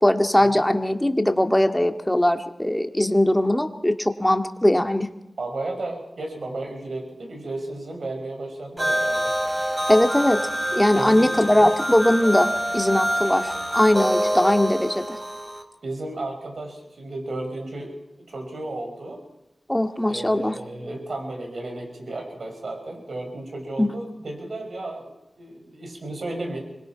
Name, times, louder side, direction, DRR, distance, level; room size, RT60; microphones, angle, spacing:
voice 1, 0.0-5.1 9.9-10.4 10.7-12.5 12.7-15.2 19.7-20.6 23.8-23.9, left 1 dB, 10° left, 6 dB, 2.0 m, -20 dB
voice 2, 5.4-9.3 10.9-11.3 15.8-19.2 20.0-26.6, right 2 dB, 75° right, 3 dB, 5.7 m, -33 dB
sound 1, 8.8-15.6, equal, 15° right, 4.3 m, -26 dB
25.5 x 21.5 x 5.8 m, 0.88 s
cardioid pair, 50°, 0 cm